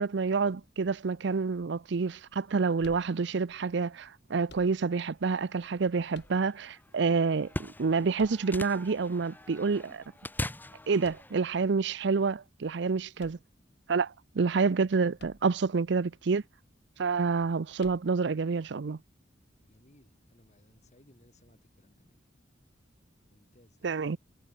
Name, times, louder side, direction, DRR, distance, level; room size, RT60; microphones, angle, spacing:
voice 1, 0.0-10.0 10.9-13.4 13.9-16.4 17.0-19.0 23.8-24.2, right 4 dB, 70° right, 0.5 m, -28 dB
sound 1, 2.8-3.6 4.4-5.2 6.1-6.8 8.1-9.0 11.0-11.6 13.2-14.0 15.2-15.7 16.0-16.1 17.8-18.4, left 2 dB, 65° left, 7.0 m, -54 dB
sound 2, 5.1-11.4, left 1 dB, 10° left, 1.5 m, -42 dB
voice 2, 19.6-22.2 23.3-23.8, left 1 dB, 40° left, 7.1 m, -62 dB
head